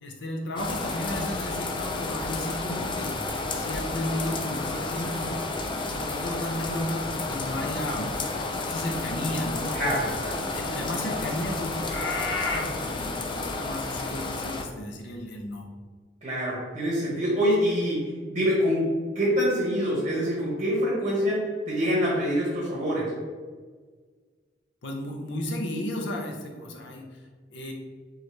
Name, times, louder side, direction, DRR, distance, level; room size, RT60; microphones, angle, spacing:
voice 1, 0.0-3.2 3.5-5.4 5.9-8.2 8.6-9.7 10.4-15.7 24.8-27.2 27.5-27.7, left 1 dB, 85° left, 1 dB, 0.7 m, -33 dB
sound 1, 0.6-14.6, left 3 dB, 30° left, 0.4 m, -31 dB
voice 2, 9.7-10.4 16.2-23.1, equal, 35° right, -7 dB, 1.4 m, -25 dB
4.5 x 3.1 x 3.2 m, 1.5 s
head